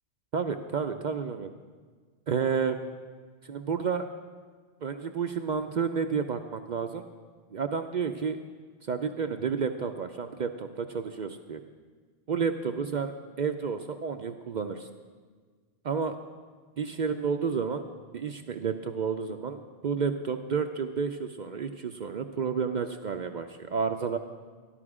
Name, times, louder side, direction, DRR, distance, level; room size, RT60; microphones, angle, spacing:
voice 1, 0.3-1.5 2.3-2.8 3.5-4.1 4.8-7.0 7.5-8.4 8.8-11.6 12.3-14.9 15.8-16.2 16.8-17.9 18.1-24.2, right 6 dB, 55° right, 7 dB, 0.5 m, -31 dB
13.5 x 11.5 x 4.8 m, 1.5 s
omnidirectional pair, 1.2 m